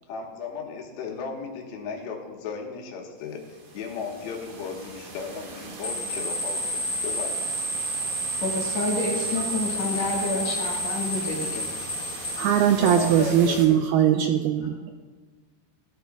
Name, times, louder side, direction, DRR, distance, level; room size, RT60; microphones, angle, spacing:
voice 1, 0.1-3.4 3.8-7.5 12.8-13.9, left 5 dB, 80° left, 1 dB, 3.6 m, -35 dB
sound 1, 3.3-13.6, right 3 dB, 60° right, 3.4 m, -40 dB
sound 2, 5.8-13.2, equal, 15° left, 3.5 m, -30 dB
voice 2, 8.4-11.6, left 2 dB, 50° left, -2 dB, 2.3 m, -28 dB
voice 3, 12.4-15.0, right 10 dB, 85° right, 6 dB, 2.2 m, -21 dB
18.0 x 13.0 x 2.4 m, 1.4 s
omnidirectional pair, 5.0 m